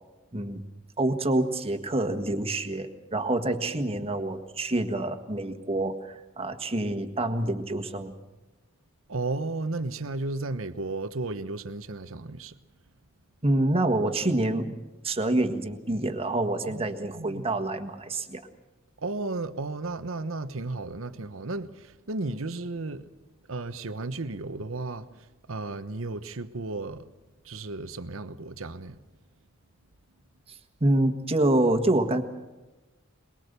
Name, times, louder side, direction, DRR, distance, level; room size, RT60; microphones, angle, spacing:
voice 1, 0.3-0.6 1.0-8.1 13.4-14.8 15.0-18.4 30.5-32.2, right 1 dB, 30° right, 1.6 m, -27 dB
voice 2, 9.1-12.5 16.6-16.9 17.1-17.4 19.0-23.1 23.5-27.1 27.4-29.0, right 2 dB, 80° right, 1.0 m, -34 dB
22.5 x 22.0 x 6.8 m
head